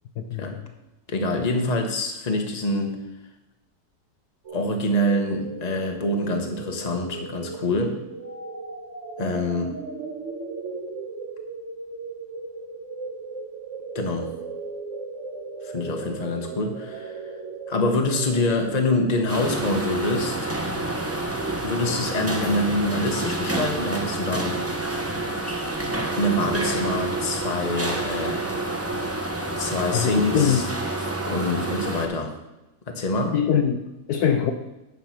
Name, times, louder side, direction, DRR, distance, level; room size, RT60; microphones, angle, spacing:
voice 1, 0.2-0.7 29.9-30.7 33.3-34.5, left 8 dB, 70° left, 5 dB, 1.2 m, -23 dB
voice 2, 1.1-3.0 4.5-8.0 9.2-9.7 13.9-14.3 15.6-17.2 17.7-20.5 21.6-24.6 26.1-28.5 29.6-30.6 31.2-32.3 32.9-33.3, left 1 dB, 25° left, 3 dB, 1.1 m, -25 dB
sound 1, 4.4-19.6, right 4 dB, 45° right, 1.8 m, -37 dB
sound 2, 19.3-32.1, right 2 dB, 15° right, 0.5 m, -28 dB
9.2 x 5.4 x 5.8 m, 0.98 s
omnidirectional pair, 1.9 m